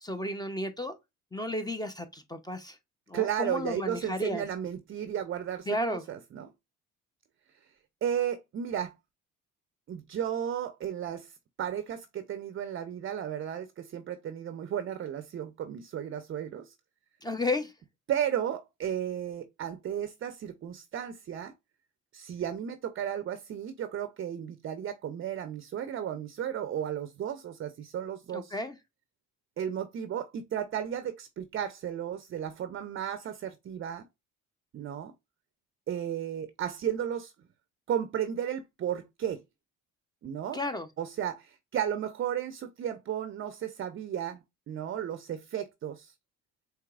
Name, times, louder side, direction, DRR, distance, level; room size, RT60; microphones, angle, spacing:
voice 1, 0.0-0.9 1.3-2.8 3.1-4.5 5.7-6.0 17.2-17.7 28.3-28.8 40.5-40.9, left 1 dB, 10° left, 0.6 m, -33 dB
voice 2, 3.1-6.5 8.0-8.9 9.9-16.7 18.1-21.5 22.1-28.5 29.6-34.1 34.7-35.1 35.9-37.3 37.9-39.4 40.2-40.6 41.0-46.1, right 9 dB, 40° right, 0.5 m, -34 dB
4.6 x 2.9 x 2.4 m
supercardioid pair, 65°, 33 cm